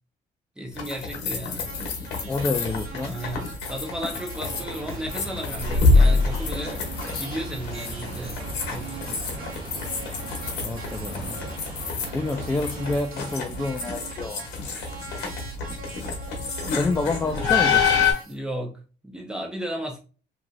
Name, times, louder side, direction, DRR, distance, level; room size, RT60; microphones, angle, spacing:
voice 1, 0.6-1.7 3.0-6.8 7.1-8.4 8.7-9.2 16.7-16.8 18.3-20.0, equal, 5° right, 0.9 m, -34 dB
sound 1, 0.7-18.1, left 4 dB, 90° left, 0.9 m, -26 dB
sound 2, 1.6-18.4, right 4 dB, 60° right, 0.8 m, -43 dB
voice 2, 2.3-3.1 10.6-11.4 12.1-14.5 16.7-17.9, left 3 dB, 15° left, 0.3 m, -28 dB
sound 3, 4.3-13.0, right 3 dB, 30° right, 1.0 m, -39 dB
2.8 x 2.6 x 2.5 m
cardioid pair, 110°, 17 cm